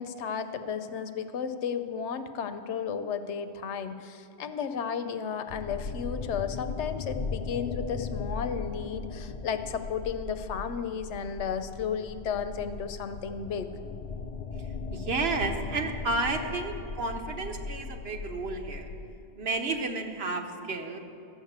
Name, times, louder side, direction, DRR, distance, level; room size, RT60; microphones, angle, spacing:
voice 1, 0.0-13.7, left 7 dB, 85° left, 9 dB, 1.0 m, -33 dB
sound 1, 5.5-19.1, left 4 dB, 60° left, 0.4 m, -38 dB
voice 2, 14.9-18.9 19.4-21.0, right 3 dB, 65° right, 4 dB, 1.2 m, -31 dB
13.5 x 6.5 x 8.0 m, 2.7 s
omnidirectional pair, 1.2 m